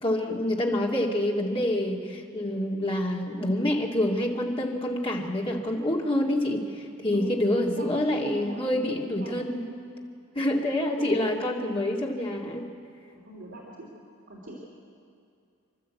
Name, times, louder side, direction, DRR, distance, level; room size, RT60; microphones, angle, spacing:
voice 1, 0.0-9.7 10.3-12.7, left 1 dB, 25° left, -1 dB, 2.3 m, -27 dB
voice 2, 7.6-9.5 10.9-11.3 13.1-13.9 14.3-14.6, right 1 dB, 55° right, -5 dB, 3.4 m, -40 dB
29.5 x 12.0 x 8.4 m, 2.4 s
head